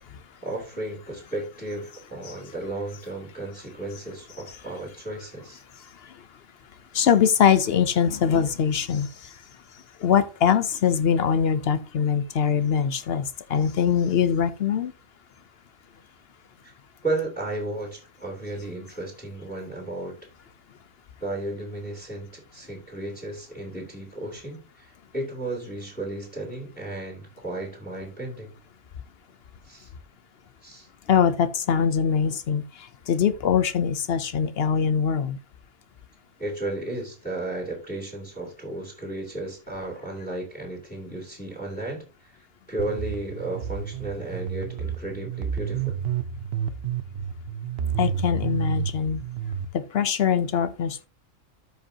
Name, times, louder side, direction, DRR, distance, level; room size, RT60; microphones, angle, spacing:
voice 1, 0.4-5.6 16.6-16.7 17.0-20.1 21.2-28.5 29.6-29.9 30.6-30.9 36.4-46.0, right 2 dB, 5° left, 2.8 m, -34 dB
voice 2, 6.9-9.1 10.0-14.9 31.1-32.6 33.1-35.4 48.0-49.2 49.7-51.1, left 7 dB, 60° left, 0.7 m, -22 dB
sound 1, 42.8-49.6, right 8 dB, 55° right, 0.9 m, -30 dB
13.5 x 5.1 x 2.8 m
omnidirectional pair, 1.4 m